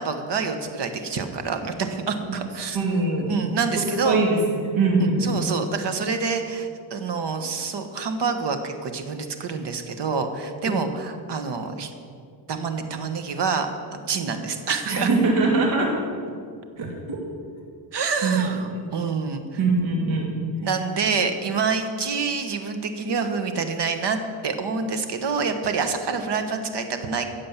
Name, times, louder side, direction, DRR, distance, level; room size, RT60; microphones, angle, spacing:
voice 1, 0.0-2.8 3.3-4.2 5.2-11.9 12.5-13.7 14.0-15.1 17.9-19.4 20.6-27.3, right 5 dB, 60° right, 7 dB, 1.4 m, -27 dB
voice 2, 2.7-3.3 3.8-5.2 10.6-10.7 14.9-15.9 16.8-16.9 18.2-18.5 18.7-18.8 19.6-20.3, right 3 dB, 80° right, -1 dB, 2.5 m, -22 dB
15.5 x 7.6 x 7.3 m, 2.2 s
cardioid pair, 135°, 47 cm